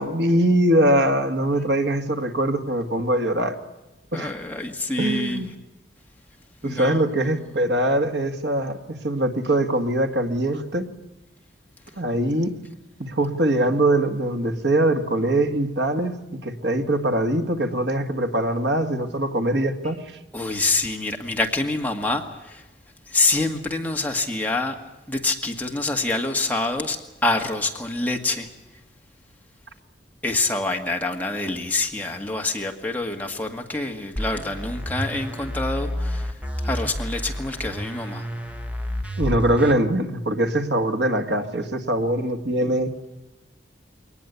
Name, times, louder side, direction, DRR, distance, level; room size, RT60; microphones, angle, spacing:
voice 1, 0.0-3.6 4.1-4.4 5.0-5.5 6.6-10.9 12.0-12.5 13.0-20.0 39.2-42.9, right 1 dB, 70° right, 5 dB, 2.0 m, -22 dB
voice 2, 4.1-5.4 6.6-7.0 20.3-22.6 23.1-24.8 25.1-28.5 30.2-36.3 36.6-38.3, left 2 dB, 10° left, 2 dB, 1.9 m, -26 dB
sound 1, 34.2-39.7, equal, 5° right, 1.3 m, -30 dB
22.5 x 19.5 x 8.3 m, 1.0 s
head